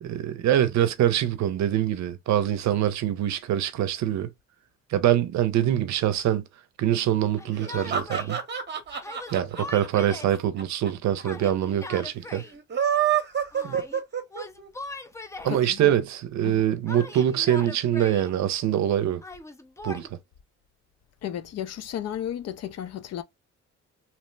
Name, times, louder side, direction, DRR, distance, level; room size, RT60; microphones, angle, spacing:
voice 1, 0.0-4.3 4.9-6.5 6.8-8.4 9.3-12.4 13.6-13.8 15.4-19.2 19.8-20.1, right 11 dB, 65° right, 0.6 m, -24 dB
Yell, 7.4-8.4 9.0-10.4 11.2-12.5 13.5-14.0 14.3-15.6 16.9-18.3 19.2-20.1, left 2 dB, 10° left, 0.5 m, -40 dB
sound 1, 7.5-10.9 11.2-11.3 11.5-11.6 12.5-14.7, right 9 dB, 35° right, 0.8 m, -27 dB
voice 2, 15.5-16.0 16.4-16.6 21.2-23.2, left 10 dB, 55° left, 0.5 m, -33 dB
2.9 x 2.0 x 3.2 m
cardioid pair, 90°, 30 cm